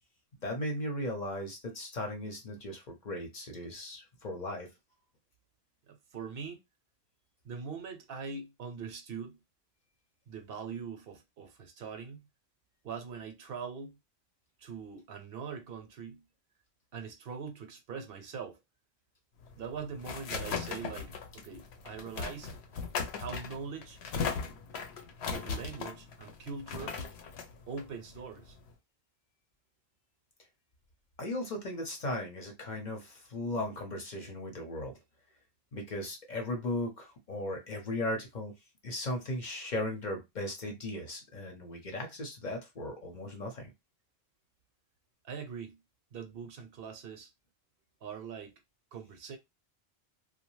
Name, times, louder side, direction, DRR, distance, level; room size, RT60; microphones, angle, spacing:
voice 1, 0.4-4.7 31.2-35.0 35.7-38.5 38.8-43.7, left 1 dB, 50° left, 0.8 m, -37 dB
voice 2, 5.9-6.6 7.4-9.4 10.3-12.2 12.8-14.0 14.6-16.2 16.9-18.6 19.6-22.5 23.2-24.0 25.3-27.0 27.7-28.6 45.2-45.8 46.1-47.3 48.0-48.5 48.9-49.4, right 6 dB, 65° right, 0.8 m, -42 dB
sound 1, 19.4-28.7, left 5 dB, 80° left, 0.9 m, -38 dB
2.6 x 2.2 x 3.0 m
omnidirectional pair, 1.1 m